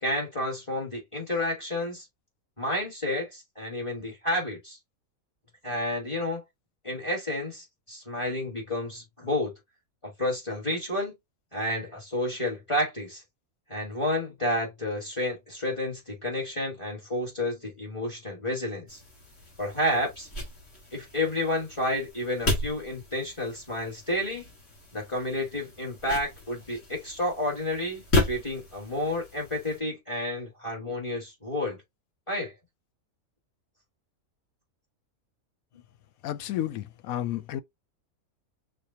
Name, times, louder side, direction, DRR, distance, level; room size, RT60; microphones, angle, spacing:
voice 1, 0.0-2.0 2.6-4.8 5.6-6.4 6.8-9.5 10.0-11.1 11.5-13.2 13.7-19.0 19.6-20.3 20.9-24.5 24.9-31.8 32.3-32.5, left 1 dB, 20° left, 1.8 m, -30 dB
sound 1, 18.9-29.8, left 2 dB, 50° left, 2.2 m, -34 dB
voice 2, 36.2-37.6, left 12 dB, 85° left, 1.0 m, -31 dB
6.4 x 2.3 x 2.7 m
omnidirectional pair, 1.5 m